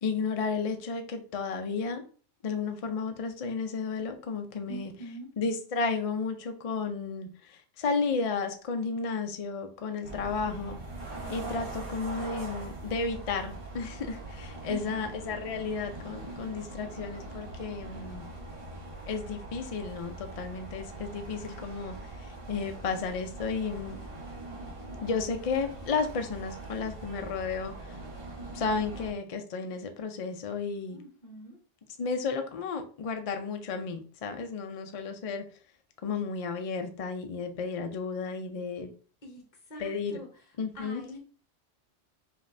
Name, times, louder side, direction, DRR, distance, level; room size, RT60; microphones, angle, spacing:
voice 1, 0.0-2.0 2.4-4.9 5.4-10.8 11.3-18.3 19.1-24.0 25.0-28.0 28.5-31.0 32.0-35.4 36.0-38.9 39.8-40.2 40.6-41.0, left 4 dB, 55° left, 0.4 m, -33 dB
voice 2, 4.7-5.3 14.6-15.1 30.9-31.6 39.2-39.4 39.7-40.3 40.7-41.2, right 2 dB, 40° left, 1.1 m, -43 dB
sound 1, 10.0-29.1, right 2 dB, 50° right, 1.2 m, -42 dB
5.1 x 2.7 x 2.6 m
omnidirectional pair, 1.3 m